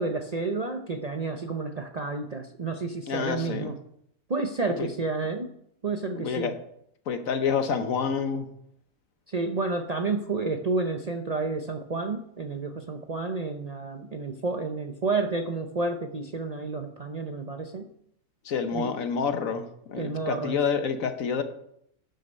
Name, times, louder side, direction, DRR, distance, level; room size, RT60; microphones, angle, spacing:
voice 1, 0.0-3.8 4.3-5.5 5.8-6.5 9.3-17.9 18.7-18.9 19.9-20.6, right 3 dB, 55° right, 5 dB, 0.4 m, -30 dB
voice 2, 3.1-3.7 4.8-4.9 6.1-6.5 7.1-8.5 18.4-21.4, left 6 dB, 65° left, 8 dB, 1.3 m, -28 dB
12.0 x 6.5 x 5.2 m, 0.73 s
omnidirectional pair, 1.6 m